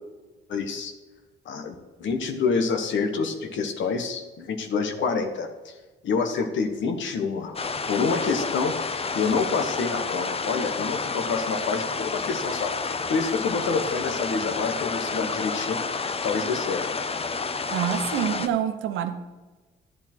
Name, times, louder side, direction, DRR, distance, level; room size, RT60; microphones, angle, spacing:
voice 1, 0.5-0.9 1.4-5.7 6.0-7.6 7.9-15.8 16.2-16.8, left 5 dB, 70° left, 6 dB, 1.2 m, -27 dB
sound 1, 7.5-18.5, left 4 dB, 30° left, 0.7 m, -30 dB
voice 2, 17.7-19.1, right 9 dB, 80° right, 8 dB, 1.0 m, -26 dB
11.5 x 8.7 x 4.4 m, 1.3 s
cardioid pair, 90°, 20 cm